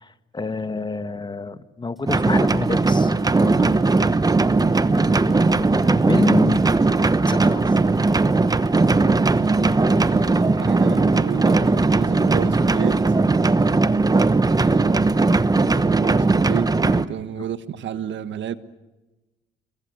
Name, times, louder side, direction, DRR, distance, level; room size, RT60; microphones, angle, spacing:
voice 1, 0.0-3.1 3.4-3.7 4.8-6.6 7.3-7.8 13.7-13.9 17.4-17.5, left 3 dB, 20° left, 1.5 m, -29 dB
sound 1, 2.0-13.2, equal, ahead, 4.8 m, -48 dB
sound 2, 2.1-17.0, right 3 dB, 20° right, 1.0 m, -18 dB
sound 3, 4.4-14.0, right 5 dB, 90° right, 4.1 m, -44 dB
voice 2, 9.8-13.2 14.4-15.1 15.7-18.6, right 9 dB, 65° right, 1.5 m, -31 dB
27.0 x 23.0 x 8.0 m
cardioid pair, 90°, 20 cm